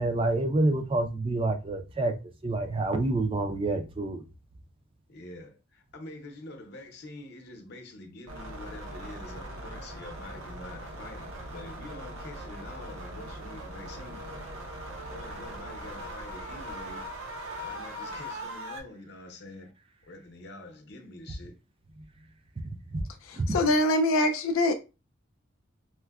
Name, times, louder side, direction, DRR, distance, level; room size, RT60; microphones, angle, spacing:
voice 1, 0.0-2.1 2.4-4.2 22.9-23.0 23.4-23.5, right 2 dB, 25° right, 0.4 m, -27 dB
voice 2, 5.1-5.5 5.9-14.4 15.1-17.0 17.6-19.7 20.1-21.5, left 2 dB, 55° left, 0.7 m, -46 dB
sound 1, 8.3-18.8, right 1 dB, 80° right, 0.8 m, -40 dB
voice 3, 23.2-24.7, left 1 dB, 85° left, 0.4 m, -24 dB
4.3 x 2.1 x 2.3 m
head